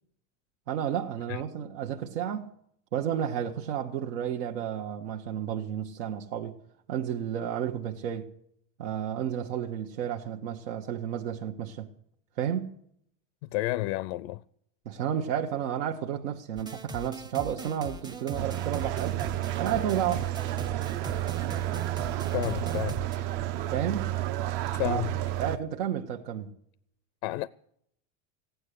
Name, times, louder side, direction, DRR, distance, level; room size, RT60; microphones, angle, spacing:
voice 1, 0.7-2.5 2.9-6.5 6.9-8.3 8.8-11.9 12.4-12.7 14.8-19.2 19.6-20.3 23.7-24.1 24.8-25.0 25.4-26.5, right 9 dB, 85° right, 1.2 m, -31 dB
voice 2, 13.5-14.4 22.3-23.0 24.7-25.1 27.2-27.5, left 17 dB, 60° left, 0.5 m, -30 dB
sound 1, 16.6-23.2, right 2 dB, 10° right, 0.7 m, -41 dB
sound 2, 18.4-25.6, right 14 dB, 50° right, 0.8 m, -31 dB
15.5 x 9.5 x 8.3 m
supercardioid pair, 145°, 36 cm